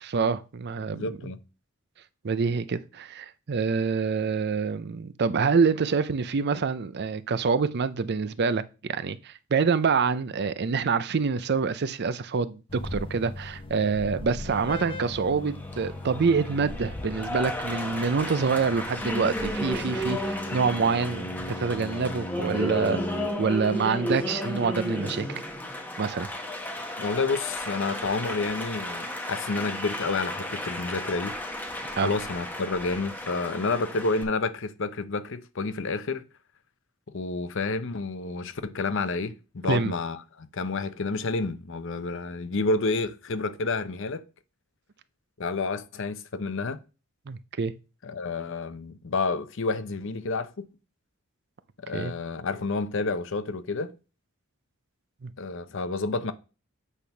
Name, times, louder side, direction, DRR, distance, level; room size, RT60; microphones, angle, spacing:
voice 1, 0.0-1.3 2.2-23.0 23.4-25.4 26.0-26.3 31.9-32.1 39.7-39.9 47.3-47.7 51.9-52.1 55.2-55.3, right 5 dB, 50° right, 0.5 m, -26 dB
voice 2, 0.9-1.4 27.0-31.4 32.0-36.2 37.1-44.2 45.4-46.8 48.0-50.7 51.8-53.9 55.4-56.3, left 3 dB, 60° left, 0.7 m, -29 dB
sound 1, 12.7-23.3, left 1 dB, 25° left, 0.6 m, -38 dB
Applause, 14.5-34.2, left 1 dB, 10° left, 1.1 m, -34 dB
8.3 x 3.5 x 5.7 m
head